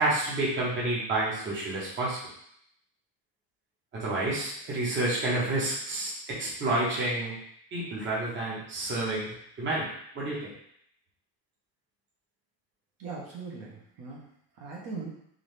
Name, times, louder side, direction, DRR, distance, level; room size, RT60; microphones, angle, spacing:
voice 1, 0.0-2.2 3.9-7.4 7.7-9.9 10.1-10.5, right 2 dB, 25° right, -7 dB, 1.0 m, -29 dB
voice 2, 13.0-14.3 14.6-15.1, right 4 dB, 50° right, -4 dB, 1.1 m, -40 dB
3.8 x 2.7 x 3.2 m, 0.71 s
cardioid pair, 155°, 44 cm